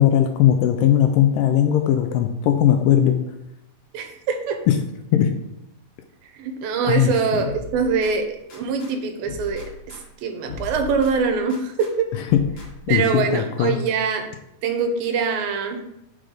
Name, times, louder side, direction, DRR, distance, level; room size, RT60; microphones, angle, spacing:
voice 1, 0.0-3.1 4.7-4.8 5.1-5.3 6.9-7.5 12.3-12.4 12.9-13.8, left 10 dB, 80° left, 7 dB, 2.0 m, -18 dB
voice 2, 3.9-4.6 6.2-12.1 12.9-14.3 14.6-15.8, right 5 dB, 85° right, 5 dB, 2.5 m, -24 dB
sound 1, 7.5-8.9 9.3-11.9 12.3-13.3, left 3 dB, 60° left, 2.2 m, -39 dB
6.4 x 4.9 x 3.8 m, 0.82 s
omnidirectional pair, 4.2 m